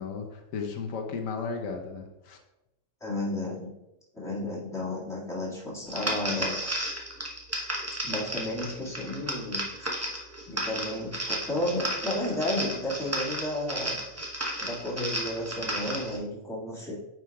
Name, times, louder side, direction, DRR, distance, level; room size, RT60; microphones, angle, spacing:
voice 1, 0.0-2.4, left 5 dB, 80° left, 3 dB, 1.1 m, -35 dB
voice 2, 3.0-3.7 4.1-6.7 8.0-9.6 10.5-14.0 14.6-17.0, left 1 dB, ahead, -8 dB, 1.8 m, -32 dB
sound 1, 5.9-16.2, right 1 dB, 15° right, 0.8 m, -33 dB
9.1 x 4.6 x 2.3 m, 0.90 s
omnidirectional pair, 1.4 m